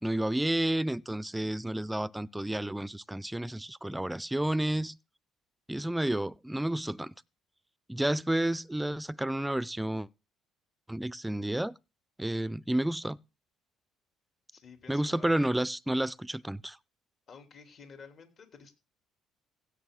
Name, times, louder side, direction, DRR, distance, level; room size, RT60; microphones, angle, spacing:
voice 1, 0.0-4.9 5.7-7.1 7.9-10.1 10.9-11.7 12.2-13.2 14.9-16.8, right 1 dB, 10° right, 0.5 m, -31 dB
voice 2, 14.5-15.4 17.3-18.7, left 5 dB, 50° left, 3.1 m, -51 dB
16.0 x 6.7 x 3.8 m
supercardioid pair, 75°, 0 cm